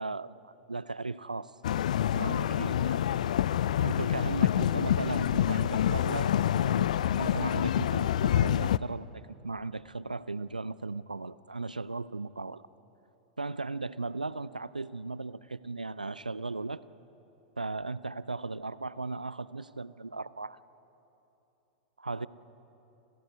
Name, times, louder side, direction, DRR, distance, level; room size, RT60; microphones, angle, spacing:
voice 1, 0.0-1.5 2.1-3.0 3.8-6.9 7.2-12.6 13.4-16.8 17.6-20.6 22.0-22.3, right 3 dB, 90° right, 17 dB, 0.5 m, -36 dB
sound 1, 1.6-8.8, left 11 dB, 65° left, 0.4 m, -27 dB
27.5 x 16.0 x 8.2 m, 3.0 s
figure-of-eight pair, 95°, 4 cm